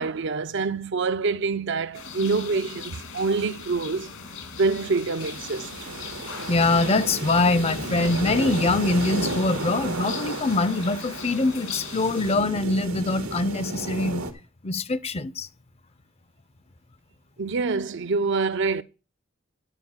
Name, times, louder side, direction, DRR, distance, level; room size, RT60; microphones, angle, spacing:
voice 1, 0.0-4.1 4.5-5.7 17.4-18.8, right 4 dB, 55° right, 0.5 m, -26 dB
sound 1, 1.9-12.3, left 6 dB, 75° left, 1.9 m, -39 dB
sound 2, 5.2-14.3, right 2 dB, 90° right, 1.5 m, -33 dB
voice 2, 6.5-14.2 14.6-15.5, left 2 dB, 30° left, 0.5 m, -23 dB
10.5 x 4.6 x 7.1 m
head